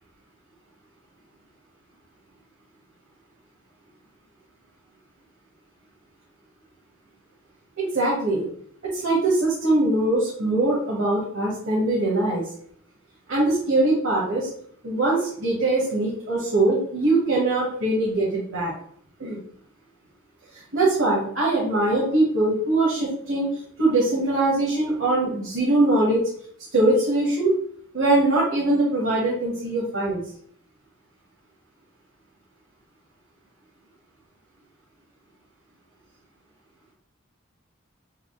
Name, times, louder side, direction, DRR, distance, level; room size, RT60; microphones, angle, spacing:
voice 1, 7.8-8.5 8.9-12.4 13.3-14.5 14.8-18.7 19.2-19.4 20.7-23.5 23.8-26.2 26.7-27.5 27.9-30.2, right 2 dB, 70° right, -5 dB, 1.1 m, -22 dB
3.5 x 2.4 x 3.6 m, 0.62 s
head